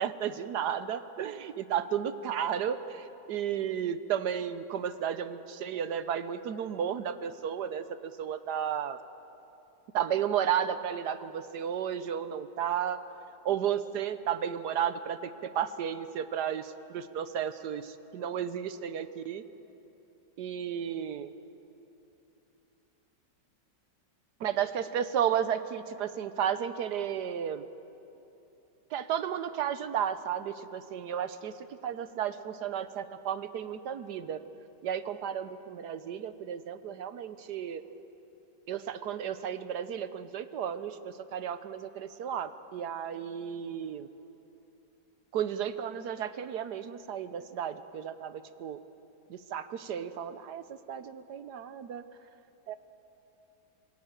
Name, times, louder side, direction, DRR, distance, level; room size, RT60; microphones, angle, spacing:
voice 1, 0.0-9.0 9.9-13.0 13.4-19.4 20.4-21.3 24.4-27.6 28.9-31.5 31.8-34.4 34.8-37.8 38.7-44.1 45.3-48.8 49.3-52.0 52.7-52.8, right 9 dB, 70° right, 12 dB, 1.3 m, -33 dB
25.0 x 16.0 x 9.1 m, 2.9 s
omnidirectional pair, 1.9 m